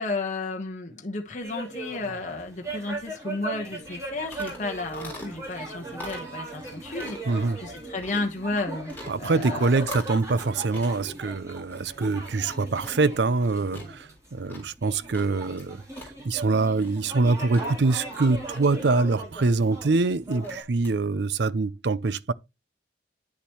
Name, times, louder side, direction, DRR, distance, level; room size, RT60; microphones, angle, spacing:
voice 1, 0.0-9.9, left 3 dB, 40° left, 1.2 m, -33 dB
sound 1, 1.4-20.6, right 2 dB, 15° right, 3.3 m, -39 dB
sound 2, 3.8-20.9, left 1 dB, 10° left, 3.6 m, -46 dB
voice 2, 7.3-7.6 9.1-15.8 16.2-22.3, right 3 dB, 65° right, 0.5 m, -24 dB
9.5 x 7.0 x 3.1 m
head